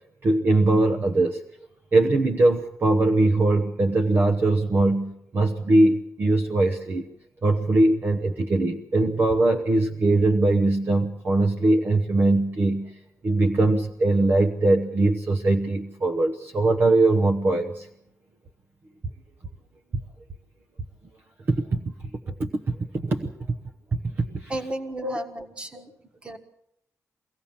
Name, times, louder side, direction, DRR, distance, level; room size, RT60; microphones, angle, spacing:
voice 1, 0.2-1.4 1.9-7.0 7.4-13.0 13.2-17.9 21.5-21.9 22.3-23.6 23.9-24.5 25.0-25.1, right 2 dB, 35° right, 4 dB, 1.0 m, -21 dB
voice 2, 24.5-25.9 26.2-26.4, right 1 dB, 20° right, 5 dB, 1.6 m, -33 dB
23.5 x 16.5 x 7.2 m, 0.78 s
wide cardioid pair, 175°, 6 cm